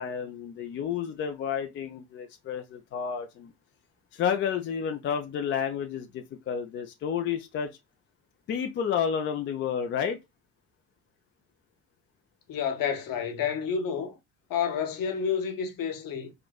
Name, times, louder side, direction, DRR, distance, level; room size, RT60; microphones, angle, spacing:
voice 1, 0.0-3.5 4.1-7.7 8.5-10.2, left 7 dB, 25° left, 0.4 m, -30 dB
voice 2, 12.5-14.2 14.5-16.3, left 7 dB, 45° left, 0.9 m, -29 dB
3.5 x 2.6 x 2.2 m
figure-of-eight pair, 50°, 48 cm